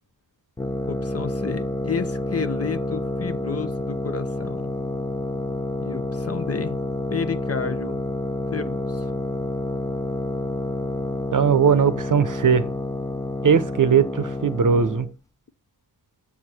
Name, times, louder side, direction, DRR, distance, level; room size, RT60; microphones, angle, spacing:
sound 1, 0.6-15.1, left 1 dB, 10° left, 0.4 m, -29 dB
voice 1, 0.8-4.7 5.8-6.8 7.1-8.0 8.5-9.1, left 6 dB, 40° left, 0.7 m, -31 dB
voice 2, 11.3-12.7 13.4-15.1, right 6 dB, 55° right, 0.7 m, -19 dB
7.0 x 4.8 x 5.4 m
cardioid pair, 55°, 39 cm